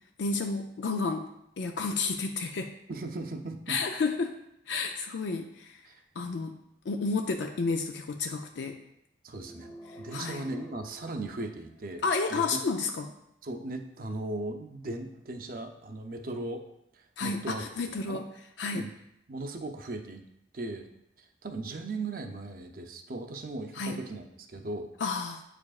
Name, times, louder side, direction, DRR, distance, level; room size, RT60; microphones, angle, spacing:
voice 1, 0.2-1.3 1.6-2.7 3.7-4.4 4.7-5.8 6.2-6.6 6.9-8.8 9.9-10.4 12.0-13.1 17.2-18.3 18.6-18.9 23.7-24.0 25.0-25.4, left 4 dB, 85° left, 5 dB, 0.4 m, -31 dB
voice 2, 2.9-3.8 5.8-6.0 9.2-9.7 10.0-12.0 12.3-12.4 13.4-16.6 16.9-17.6 18.1-18.2 18.7-18.9 19.3-20.2 20.5-20.9 21.2-24.9, right 2 dB, 50° right, 5 dB, 0.6 m, -37 dB
sound 1, 9.4-12.0, equal, 15° left, 0.5 m, -49 dB
8.1 x 4.9 x 2.4 m, 0.80 s
head